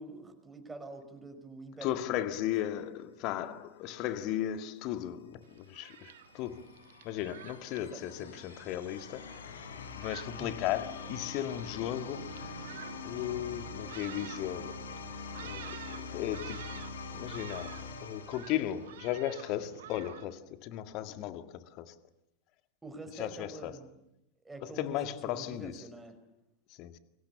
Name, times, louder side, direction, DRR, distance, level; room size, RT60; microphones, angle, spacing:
voice 1, 0.0-2.8 7.9-8.4 10.4-10.7 22.8-23.9 24.4-26.2, right 2 dB, 10° right, 5.2 m, -47 dB
voice 2, 1.8-6.8 7.0-9.6 9.9-12.5 13.0-14.9 15.4-16.8 17.1-22.0 23.2-23.7 24.6-25.8 26.7-27.0, left 12 dB, 40° left, 1.9 m, -36 dB
Thunderstorm, 5.4-20.2, right 12 dB, 55° right, 1.5 m, -50 dB
sound 1, 5.5-19.3, left 4 dB, 65° left, 3.9 m, -44 dB
29.5 x 23.5 x 7.0 m
figure-of-eight pair, 90°, 0 cm